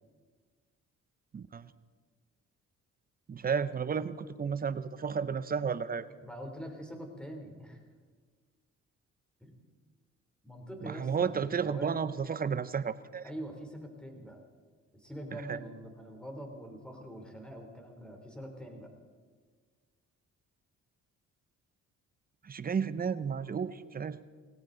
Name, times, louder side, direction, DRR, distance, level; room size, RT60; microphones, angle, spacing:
voice 1, 1.3-1.7 3.3-6.1 10.8-13.3 15.5-15.6 22.4-24.2, right 6 dB, 30° right, 14 dB, 0.7 m, -32 dB
voice 2, 6.2-7.8 9.4-9.5 10.4-11.3 11.6-12.0 13.2-14.4 14.9-18.9, equal, 5° left, 3 dB, 3.2 m, -44 dB
18.5 x 17.5 x 3.9 m, 1.5 s
cardioid pair, 90°, 30 cm